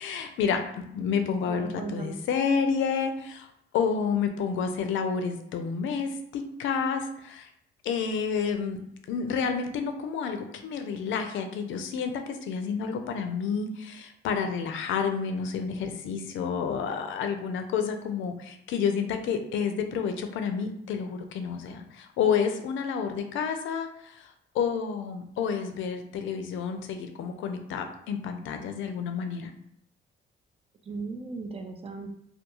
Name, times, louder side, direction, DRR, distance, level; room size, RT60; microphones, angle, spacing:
voice 1, 0.0-3.5 3.7-7.5 7.8-8.8 9.1-24.3 24.5-29.5, left 6 dB, 75° left, 6 dB, 0.4 m, -29 dB
voice 2, 1.5-2.2 30.9-32.1, right 4 dB, 30° right, 4 dB, 0.4 m, -37 dB
2.3 x 2.3 x 2.9 m, 0.73 s
cardioid pair, 90°, 20 cm